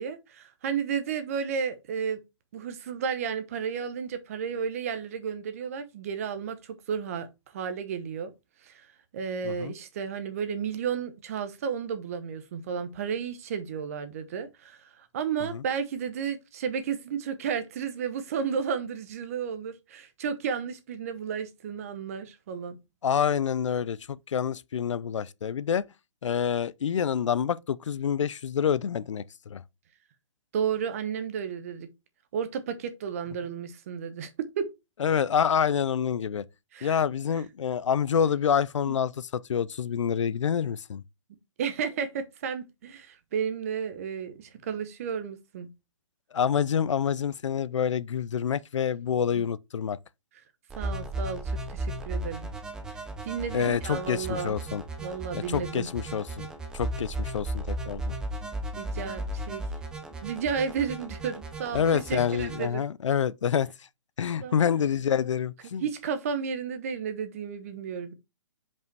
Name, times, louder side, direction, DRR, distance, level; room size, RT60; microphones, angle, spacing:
voice 1, 0.0-2.2 2.5-7.3 7.5-8.3 8.6-8.9 9.1-22.8 30.5-31.9 32.3-34.3 34.6-34.7 36.7-36.9 38.9-39.0 41.6-45.7 49.3-49.4 50.8-52.5 52.9-54.5 55.0-55.9 58.7-59.6 60.2-62.8 64.4-64.6 65.6-68.1, right 7 dB, 30° right, 0.9 m, -32 dB
voice 2, 23.0-25.8 26.2-29.6 35.0-36.4 36.8-41.0 46.3-50.0 53.5-54.8 55.3-56.5 56.7-58.1 61.7-63.7 64.2-65.8, left 8 dB, 70° left, 0.5 m, -27 dB
sound 1, 50.7-62.7, right 1 dB, 5° right, 0.8 m, -35 dB
5.3 x 5.3 x 4.6 m
hypercardioid pair, 170°, 16 cm